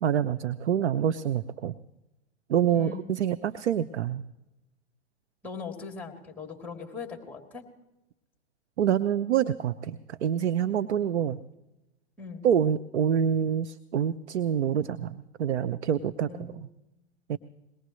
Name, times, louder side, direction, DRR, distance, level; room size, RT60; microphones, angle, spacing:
voice 1, 0.0-1.7 2.5-4.2 8.8-11.4 12.4-16.7 17.3-17.4, right 9 dB, 80° right, 12 dB, 0.7 m, -26 dB
voice 2, 2.7-3.1 5.4-7.6 12.2-12.4 16.2-16.6, left 5 dB, 5° left, 1 dB, 3.1 m, -40 dB
22.5 x 19.0 x 3.2 m, 0.96 s
hypercardioid pair, 110°, 33 cm